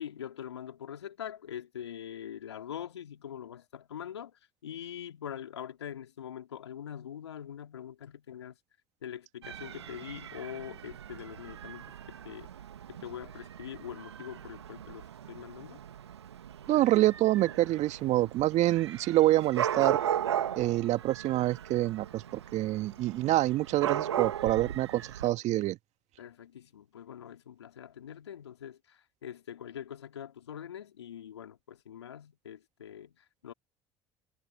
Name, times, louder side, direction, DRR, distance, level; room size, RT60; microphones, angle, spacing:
voice 1, 0.0-8.6 9.0-12.5 12.9-15.8 26.2-33.5, left 9 dB, 85° left, 2.7 m, -43 dB
Dog / Cat, 9.4-25.3, right 10 dB, 85° right, 2.0 m, -37 dB
voice 2, 16.7-20.0 20.6-25.8, right 15 dB, 55° right, 2.0 m, -26 dB
figure-of-eight pair, 60°, 14 cm